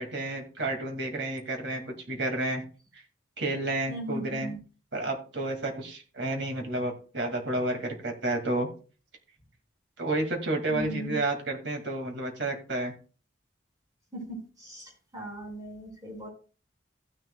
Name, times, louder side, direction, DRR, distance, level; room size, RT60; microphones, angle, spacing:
voice 1, 0.0-2.6 2.9-3.0 3.4-4.5 4.9-8.7 10.0-12.9, right 2 dB, 65° right, 3 dB, 2.3 m, -31 dB
voice 2, 3.9-4.6 10.7-11.2 14.1-14.2 14.6-16.3, equal, 20° right, -1 dB, 5.3 m, -38 dB
15.0 x 9.9 x 2.3 m, 0.37 s
head